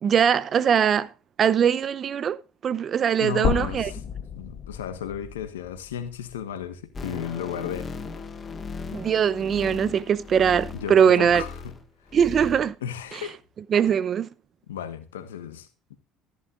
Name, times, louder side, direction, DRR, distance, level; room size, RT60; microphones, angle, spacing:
voice 1, 0.0-1.1 1.4-2.4 2.6-3.9 8.9-11.4 12.1-12.7 13.7-14.3, right 8 dB, 45° right, 0.7 m, -21 dB
voice 2, 3.2-7.9 10.7-11.8 12.8-13.4 14.7-16.0, left 9 dB, 90° left, 1.3 m, -35 dB
sound 1, 3.4-7.6 8.0-8.1 9.5-9.6, left 8 dB, 55° left, 1.0 m, -33 dB
sound 2, 6.9-11.8 12.1-12.7 13.0-13.1, left 4 dB, 30° left, 1.7 m, -38 dB
14.0 x 11.0 x 2.5 m
hypercardioid pair, 70°, 0 cm